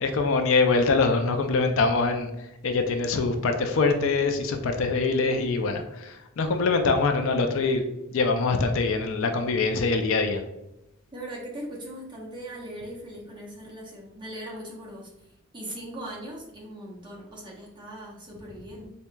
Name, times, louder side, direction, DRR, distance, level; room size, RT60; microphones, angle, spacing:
voice 1, 0.0-2.3 2.6-7.9 8.1-10.4, left 3 dB, 65° left, 6 dB, 0.4 m, -24 dB
voice 2, 11.1-15.3 15.5-18.9, right 1 dB, 20° right, -4 dB, 0.9 m, -39 dB
4.4 x 2.8 x 2.2 m, 0.87 s
head